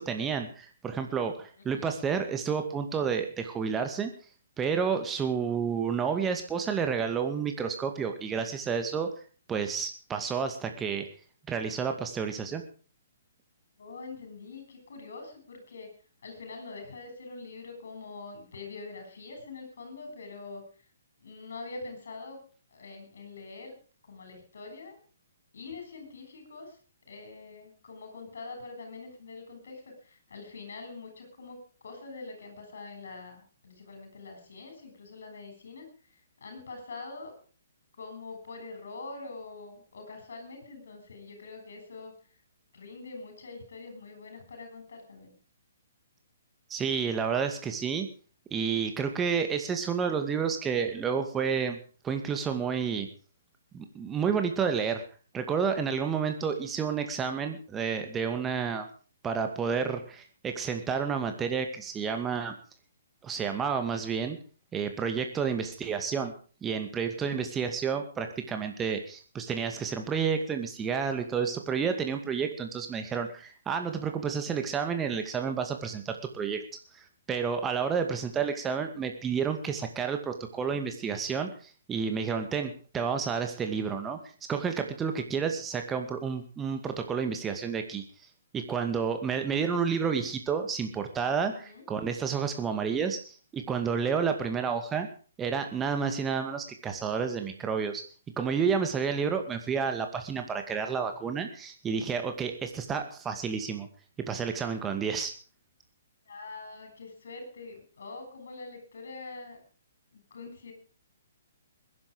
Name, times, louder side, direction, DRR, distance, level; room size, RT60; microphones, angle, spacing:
voice 1, 0.0-4.1 4.6-9.1 9.5-11.0 11.5-12.6 46.7-48.1 48.5-51.8 52.0-53.1 53.7-55.0 55.3-58.9 59.2-62.5 63.2-64.4 64.7-66.3 66.6-76.6 76.9-77.0 77.3-84.2 84.5-88.0 88.5-95.1 95.4-98.0 98.4-103.9 104.3-105.3, right 6 dB, 15° right, 6 dB, 2.2 m, -30 dB
voice 2, 13.8-15.9 16.2-20.6 21.2-22.4 22.7-23.7 24.1-24.9 25.5-26.7 27.1-29.8 30.3-31.6 31.8-35.9 36.4-37.3 38.0-42.1 42.7-45.3 91.6-91.8 106.3-109.6 110.1-110.7, left 3 dB, 60° left, 5 dB, 7.4 m, -44 dB
20.5 x 11.0 x 5.1 m, 0.39 s
figure-of-eight pair, 125°, 0 cm